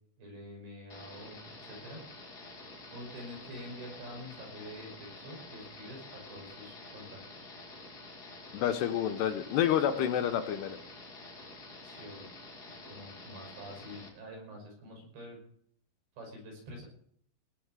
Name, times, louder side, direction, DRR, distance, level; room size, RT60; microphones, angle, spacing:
voice 1, 0.2-2.0 2.9-7.5 11.8-12.3 12.7-15.4 16.2-16.9, equal, 70° right, 1 dB, 7.9 m, -47 dB
sound 1, 0.9-14.1, left 2 dB, 30° left, 2.3 m, -49 dB
voice 2, 8.5-10.8, left 10 dB, 75° left, 9 dB, 2.8 m, -29 dB
18.5 x 7.1 x 8.9 m, 0.66 s
omnidirectional pair, 5.3 m